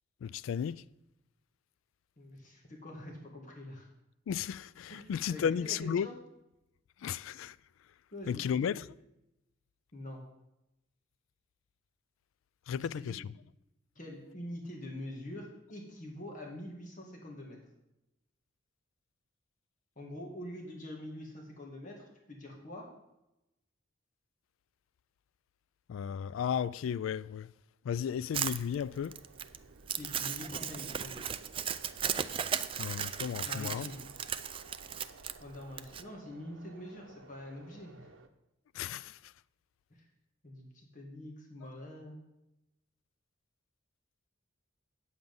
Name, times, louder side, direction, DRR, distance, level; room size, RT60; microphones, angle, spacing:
voice 1, 0.2-0.8 4.3-6.1 7.0-7.6 8.3-8.8 12.7-13.3 25.9-27.5 27.8-29.2 32.8-33.9 38.7-39.3, left 8 dB, 85° left, 0.3 m, -34 dB
voice 2, 2.2-3.9 4.9-6.1 8.1-8.8 9.9-10.2 12.8-13.2 14.0-17.6 20.0-22.9 30.0-31.2 33.4-34.0 35.4-38.1 39.9-40.1 40.4-42.2, left 1 dB, 40° left, 1.9 m, -45 dB
Crumpling crinkling, 28.3-36.0, right 8 dB, 25° right, 0.3 m, -36 dB
sound 1, 28.7-38.3, right 3 dB, 85° right, 0.8 m, -57 dB
8.8 x 7.8 x 5.4 m
head